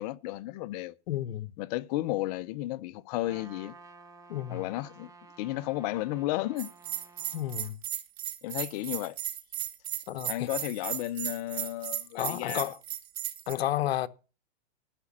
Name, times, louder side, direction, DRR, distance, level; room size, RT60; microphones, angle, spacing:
voice 1, 0.0-0.9 1.6-3.7 4.5-5.1 5.4-6.7 8.4-9.2 10.2-12.7, left 16 dB, 40° left, 0.6 m, -33 dB
voice 2, 1.1-1.5 4.3-4.7 7.3-7.8 10.1-10.5 12.1-12.8 13.5-14.1, left 13 dB, 70° left, 0.9 m, -31 dB
Trumpet, 3.2-7.7, right 4 dB, 10° right, 1.0 m, -53 dB
Bell, 6.6-13.5, right 12 dB, 70° right, 2.0 m, -35 dB
12.5 x 6.0 x 7.3 m
hypercardioid pair, 140°, 32 cm